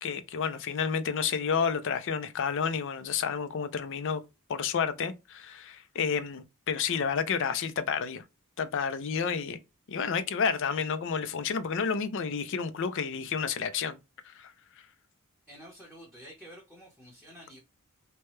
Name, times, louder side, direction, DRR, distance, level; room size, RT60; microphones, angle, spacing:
voice 1, 0.0-4.2 4.5-8.2 8.6-9.6 9.9-14.0 14.3-14.5, left 6 dB, 55° left, 0.4 m, -30 dB
voice 2, 15.5-17.6, equal, ahead, 0.9 m, -49 dB
2.8 x 2.2 x 3.1 m
head